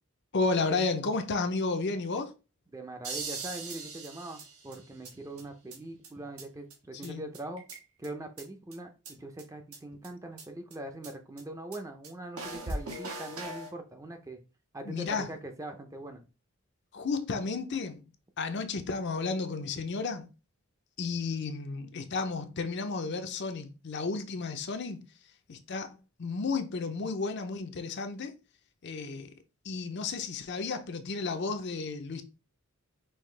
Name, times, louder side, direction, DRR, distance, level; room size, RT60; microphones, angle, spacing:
voice 1, 0.3-2.3 6.9-7.2 14.8-15.3 16.9-18.1 18.4-20.3 21.0-25.0 25.5-28.3 28.8-29.3 29.6-32.2, left 4 dB, 50° left, 0.6 m, -32 dB
voice 2, 2.7-7.6 8.0-14.4 14.7-16.2, right 1 dB, 15° right, 0.5 m, -42 dB
sound 1, 3.0-5.1 5.4-5.5 5.7-5.8 6.0-6.1 6.4-6.5 6.7-6.8 7.0-7.1 7.3-8.1 8.4-8.5 8.7-8.8 9.1-9.2 9.4-9.5 9.7-9.8 10.0-10.1 10.4-10.5 10.7-10.8 11.0-11.1 11.4-11.5 11.7-11.8 12.0-12.1 12.4-13.7, right 2 dB, 80° right, 1.5 m, -39 dB
5.6 x 2.8 x 3.3 m
head